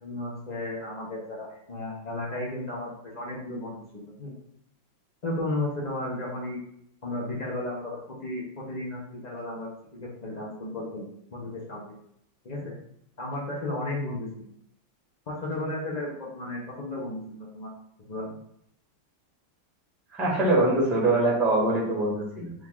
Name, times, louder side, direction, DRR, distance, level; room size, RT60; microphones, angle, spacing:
voice 1, 0.0-4.3 5.2-6.6 7.0-11.9 12.4-12.8 13.2-14.5 15.3-17.7 18.1-18.3, left 1 dB, 85° left, -5 dB, 0.3 m, -34 dB
voice 2, 20.1-22.5, right 2 dB, ahead, -4 dB, 0.6 m, -23 dB
5.0 x 2.4 x 3.6 m, 0.72 s
omnidirectional pair, 2.2 m